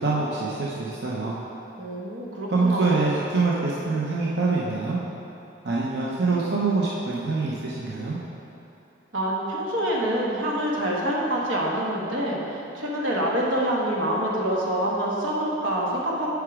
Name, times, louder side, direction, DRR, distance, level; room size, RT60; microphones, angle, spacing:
voice 1, 0.0-1.3 2.5-5.0 5.6-8.2, right 3 dB, 60° right, -6 dB, 0.7 m, -25 dB
voice 2, 1.8-3.0 9.1-16.3, right 1 dB, 85° right, -3 dB, 1.3 m, -26 dB
8.1 x 4.8 x 4.8 m, 2.9 s
head